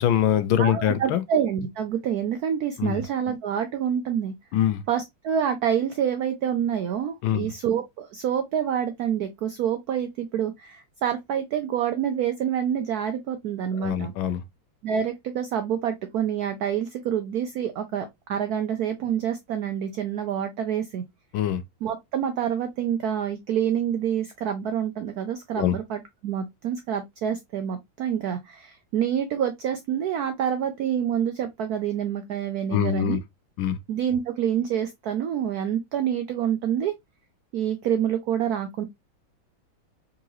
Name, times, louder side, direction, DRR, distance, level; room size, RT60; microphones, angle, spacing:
voice 1, 0.0-1.2 2.8-3.0 4.5-4.8 7.2-7.5 13.7-14.4 21.3-21.6 25.5-25.8 32.7-33.2 33.6-33.8, left 10 dB, 80° left, 1.4 m, -23 dB
voice 2, 0.6-4.3 4.9-14.1 14.8-21.0 21.8-33.2 33.9-36.9 37.5-38.8, right 9 dB, 80° right, 0.8 m, -27 dB
3.8 x 3.8 x 2.9 m
omnidirectional pair, 2.3 m